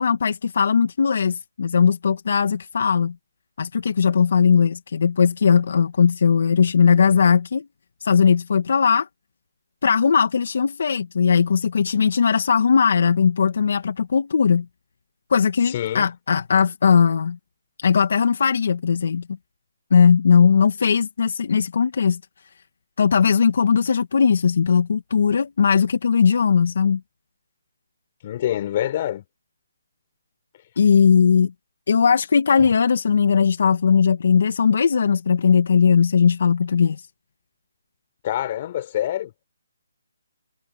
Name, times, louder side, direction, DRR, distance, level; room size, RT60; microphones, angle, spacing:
voice 1, 0.0-3.1 3.6-7.7 8.0-9.1 9.8-14.7 15.3-17.4 17.8-19.2 19.9-22.2 23.0-27.0 30.8-31.5 31.9-37.0, left 6 dB, 60° left, 1.8 m, -18 dB
voice 2, 15.7-16.1 28.2-29.2 38.2-39.3, left 12 dB, 35° left, 5.3 m, -26 dB
hypercardioid pair, 165°, 0 cm